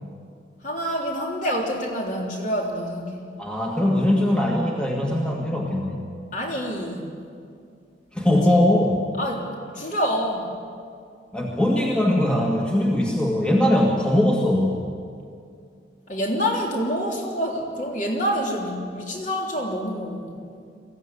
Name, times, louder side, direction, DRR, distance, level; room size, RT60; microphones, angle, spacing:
voice 1, 0.6-3.2 6.3-7.1 8.2-8.3 9.2-9.5 9.7-10.5 16.1-20.4, equal, 40° left, -1 dB, 3.4 m, -27 dB
voice 2, 3.4-6.1 8.1-9.0 11.3-14.9, left 1 dB, 5° left, -1 dB, 1.7 m, -21 dB
22.0 x 15.5 x 9.7 m, 2.3 s
head